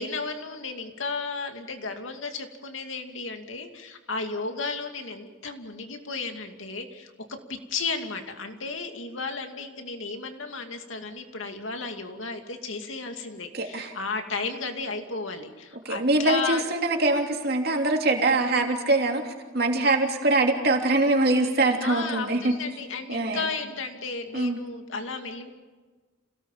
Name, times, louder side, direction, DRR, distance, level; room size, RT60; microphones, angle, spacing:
voice 1, 0.0-16.6 21.8-25.5, left 4 dB, 85° left, 5 dB, 2.5 m, -34 dB
voice 2, 13.5-13.9 15.8-22.5 23.1-23.5 24.3-24.6, right 2 dB, 50° right, 3 dB, 3.0 m, -23 dB
28.0 x 18.0 x 7.4 m, 1.3 s
head